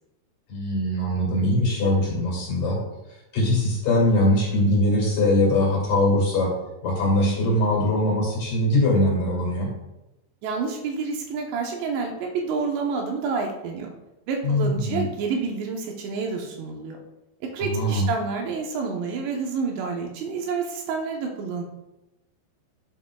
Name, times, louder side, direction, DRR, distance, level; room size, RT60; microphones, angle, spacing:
voice 1, 0.5-2.8 3.3-6.5 6.8-9.7 14.4-15.1 17.6-18.1, left 1 dB, 55° left, -4 dB, 3.5 m, -22 dB
voice 2, 10.4-13.9 14.3-17.0 17.4-21.6, right 5 dB, 75° right, 1 dB, 3.0 m, -28 dB
11.5 x 7.2 x 2.3 m, 0.94 s
omnidirectional pair, 5.3 m